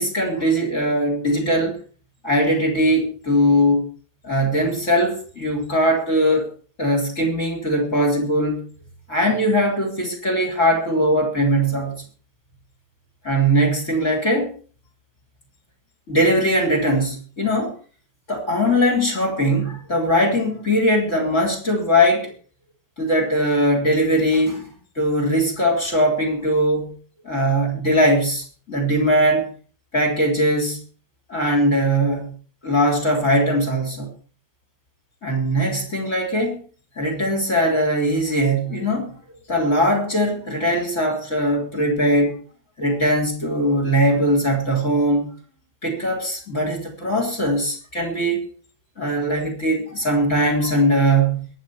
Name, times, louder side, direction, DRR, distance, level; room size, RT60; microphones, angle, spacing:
voice 1, 0.0-1.8 2.2-3.9 4.2-6.5 6.8-8.6 9.1-12.0 13.2-14.5 16.1-17.7 18.3-22.3 23.0-26.9 27.2-29.5 29.9-30.8 31.3-32.3 32.6-34.1 35.2-36.6 37.0-39.2 39.5-42.4 42.8-45.3 45.8-48.4 49.0-51.5, equal, 35° left, 2 dB, 4.4 m, -20 dB
22.0 x 8.7 x 4.7 m, 0.41 s
omnidirectional pair, 2.2 m